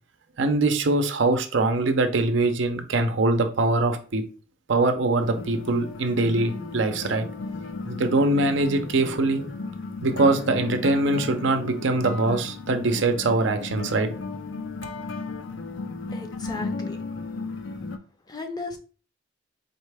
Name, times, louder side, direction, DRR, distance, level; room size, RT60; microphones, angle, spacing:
voice 1, 0.4-4.2 4.7-7.3 7.9-9.4 10.0-14.1, right 2 dB, 65° right, 0.6 m, -23 dB
sound 1, 5.2-18.0, left 3 dB, 65° left, 0.5 m, -35 dB
voice 2, 16.1-17.0 18.3-18.8, left 3 dB, 20° left, 0.6 m, -35 dB
4.2 x 3.2 x 3.4 m
head